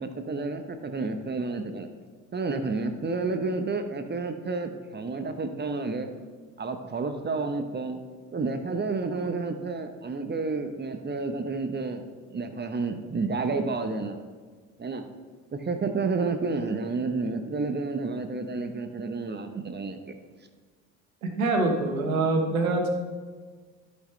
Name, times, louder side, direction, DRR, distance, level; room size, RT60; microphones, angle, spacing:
voice 1, 0.0-1.9 2.3-6.1 6.6-8.0 8.3-12.1 12.3-14.2 14.8-15.0 15.5-20.1, right 3 dB, 25° right, 7 dB, 1.0 m, -30 dB
voice 2, 21.2-22.9, right 2 dB, 85° right, 4 dB, 1.2 m, -25 dB
12.5 x 6.3 x 3.3 m, 1.5 s
hypercardioid pair, 55°, 41 cm